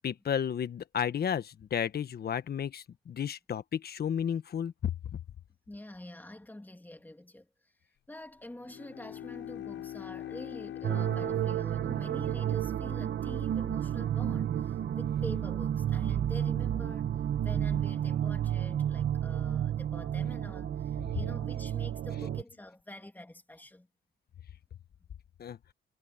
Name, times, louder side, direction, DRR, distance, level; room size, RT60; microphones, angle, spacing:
voice 1, 0.0-4.9 25.4-25.6, left 8 dB, 50° left, 1.3 m, -32 dB
voice 2, 5.7-7.5 8.1-17.1 17.4-23.9, left 1 dB, 10° left, 3.0 m, -46 dB
Bowed string instrument, 8.5-13.1, left 12 dB, 75° left, 7.0 m, -44 dB
sound 1, 10.8-22.4, right 10 dB, 60° right, 1.3 m, -31 dB
cardioid pair, 90°, 20 cm